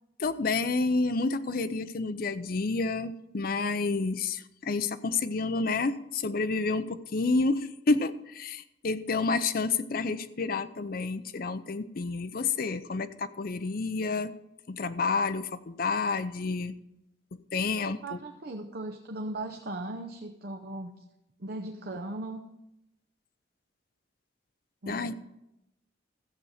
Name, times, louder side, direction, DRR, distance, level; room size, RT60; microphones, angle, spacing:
voice 1, 0.2-14.3 14.7-16.7 17.5-18.2 24.9-25.1, left 3 dB, 50° left, 12 dB, 0.6 m, -29 dB
voice 2, 18.0-20.9 21.4-22.5 24.8-25.2, right 2 dB, 55° right, 3 dB, 0.7 m, -38 dB
14.0 x 7.7 x 4.9 m, 0.88 s
head